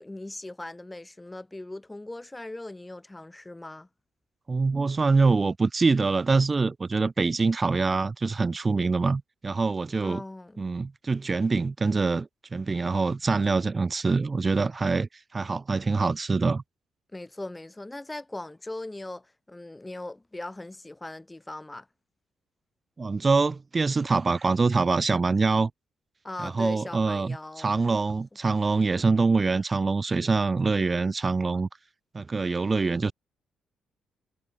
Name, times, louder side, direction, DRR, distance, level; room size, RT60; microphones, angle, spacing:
voice 1, 0.0-3.9 10.0-10.7 17.1-21.9 26.2-27.7, left 2 dB, 10° left, 3.2 m, -39 dB
voice 2, 4.5-10.2 10.6-16.6 23.0-25.7 26.4-31.7 32.1-33.1, right 4 dB, 20° right, 1.9 m, -25 dB
cardioid pair, 165°, 0 cm